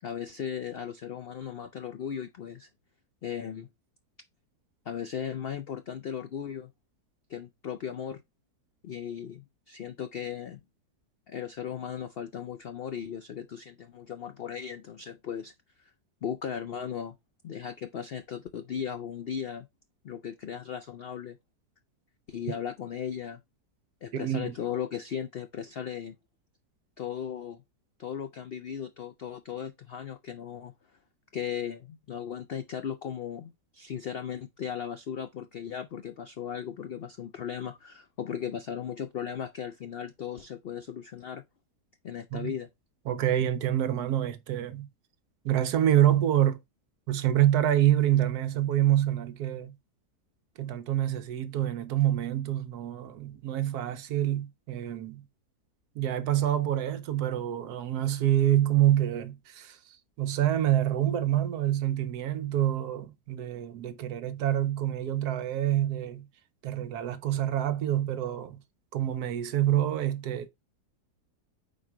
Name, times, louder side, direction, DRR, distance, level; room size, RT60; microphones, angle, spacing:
voice 1, 0.0-2.7 3.2-3.7 4.9-6.7 7.3-8.2 8.8-10.6 11.3-15.5 15.8-15.9 16.2-17.2 17.4-19.7 20.0-21.4 22.3-23.4 24.0-26.2 27.0-27.6 28.0-30.7 31.3-41.4 42.0-42.7, left 8 dB, 80° left, 0.5 m, -37 dB
voice 2, 24.1-24.5 42.3-42.5 43.1-44.9 45.4-46.6 47.1-49.7 50.6-55.2 56.0-59.8 60.2-66.3 66.6-68.6 68.9-70.5, right 12 dB, 80° right, 1.2 m, -26 dB
4.8 x 4.4 x 4.5 m
omnidirectional pair, 1.7 m